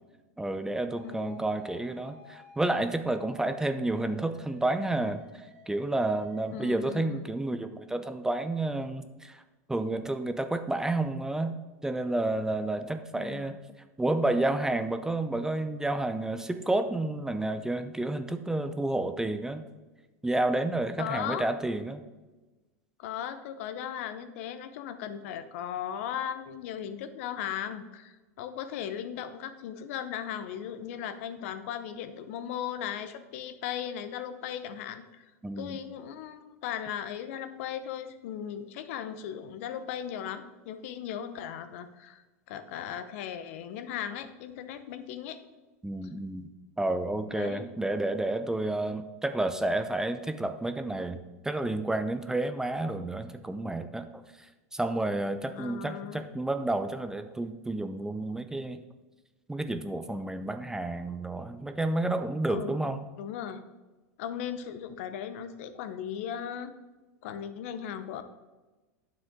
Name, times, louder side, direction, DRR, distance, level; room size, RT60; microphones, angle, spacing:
voice 1, 0.4-9.4 9.7-11.6 11.8-13.6 14.0-19.6 20.2-22.0 35.4-35.8 45.8-46.5 46.8-51.2 51.4-54.2 54.7-58.8 59.5-63.1, right 2 dB, 5° right, 9 dB, 0.6 m, -30 dB
sound 1, 0.9-6.7, right 1 dB, 70° right, 2.2 m, -55 dB
voice 2, 1.0-1.4 6.5-7.3 13.1-13.5 21.0-21.5 23.0-35.2 35.6-42.2 42.5-45.4 47.3-47.7 55.5-56.3 62.5-62.9 63.2-63.6 64.2-66.7 67.2-68.2, left 9 dB, 65° left, 11 dB, 0.8 m, -37 dB
9.4 x 7.3 x 3.7 m, 1.2 s
hypercardioid pair, 95°, 8 cm